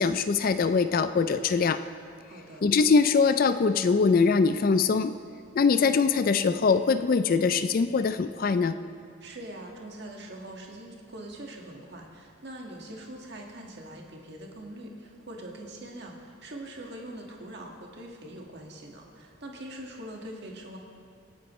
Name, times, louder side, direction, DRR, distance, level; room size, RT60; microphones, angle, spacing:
voice 1, 0.0-1.8 2.6-5.1 5.6-8.8, left 5 dB, 45° left, 11 dB, 0.4 m, -23 dB
voice 2, 2.3-2.7 9.2-20.8, right 1 dB, 55° right, 0 dB, 1.7 m, -43 dB
25.5 x 8.9 x 3.1 m, 2.3 s
head